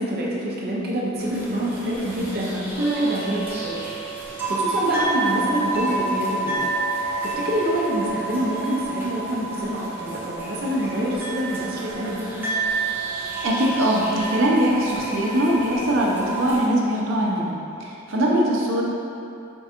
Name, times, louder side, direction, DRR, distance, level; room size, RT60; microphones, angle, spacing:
voice 1, 0.0-3.8 4.2-6.6 7.2-12.4 18.3-18.6, right 1 dB, 50° right, -5 dB, 0.7 m, -26 dB
sound 1, 1.2-16.7, right 3 dB, 10° right, 0.5 m, -29 dB
voice 2, 13.4-17.5 17.8-18.8, equal, 90° right, -3 dB, 0.7 m, -21 dB
4.5 x 2.5 x 4.3 m, 2.7 s
head